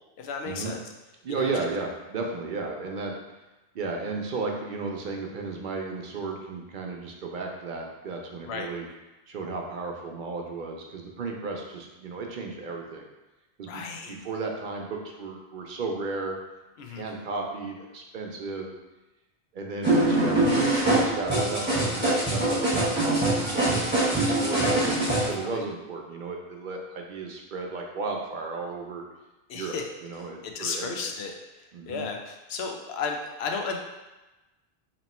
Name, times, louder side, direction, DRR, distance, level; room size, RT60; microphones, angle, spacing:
voice 1, 0.2-0.8 1.3-1.5 8.4-8.7 13.7-14.1 16.8-17.1 24.5-24.8 25.2-25.6 29.5-29.9 30.2-33.8, left 5 dB, 80° left, 3 dB, 0.8 m, -34 dB
voice 2, 1.2-3.2 3.7-8.9 9.3-13.1 13.6-13.8 14.1-16.4 16.8-18.7 19.5-29.0 29.5-29.8 30.0-31.0 31.7-32.0, right 3 dB, 60° right, 1 dB, 0.6 m, -34 dB
sound 1, 19.8-25.3, right 1 dB, 10° right, 1.1 m, -23 dB
3.0 x 2.9 x 4.1 m, 1.1 s
omnidirectional pair, 1.0 m